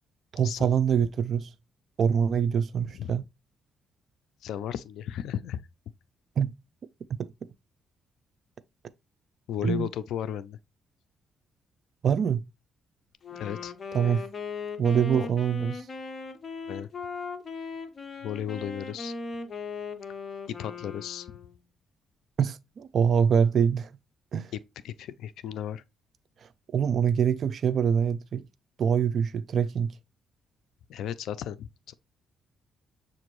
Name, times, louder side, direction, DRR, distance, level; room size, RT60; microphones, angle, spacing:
voice 1, 0.3-1.5 2.0-3.2 6.4-6.5 7.1-7.3 9.6-9.9 12.0-12.4 13.9-14.2 14.8-15.9 22.4-23.9 24.3-24.5 26.7-28.4 28.8-29.9, right 7 dB, 55° right, 0.4 m, -24 dB
voice 2, 4.4-5.6 9.5-10.6 13.3-13.7 14.0-14.2 15.1-15.3 16.7-16.9 18.2-19.1 20.5-21.4 24.5-24.6 24.8-25.8 30.9-31.9, left 10 dB, 80° left, 0.3 m, -34 dB
Wind instrument woodwind instrument, 13.2-21.6, left 4 dB, 40° left, 0.8 m, -38 dB
6.8 x 2.6 x 3.0 m
cardioid pair, 90°, 0 cm